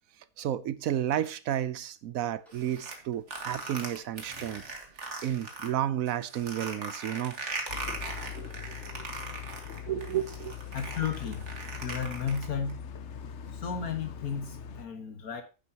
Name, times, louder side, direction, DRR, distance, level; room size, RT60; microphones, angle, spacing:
voice 1, 0.4-4.6 5.2-7.4 8.4-9.0 9.8-10.6, right 11 dB, 75° right, 1.1 m, -32 dB
Clock, 1.3-1.7 2.4-2.7 3.4-3.6 4.4-4.7 5.4-5.6 6.4-6.7 7.4-7.6 8.4-8.7, left 1 dB, ahead, 5.3 m, -61 dB
sound 1, 2.5-5.7 6.1-12.7, right 3 dB, 55° right, 2.0 m, -39 dB
sound 2, 7.7-14.9, left 8 dB, 60° left, 0.9 m, -41 dB
voice 2, 10.7-11.5 11.8-12.9 13.5-15.4, left 7 dB, 75° left, 2.0 m, -33 dB
10.0 x 9.3 x 2.9 m
omnidirectional pair, 1.5 m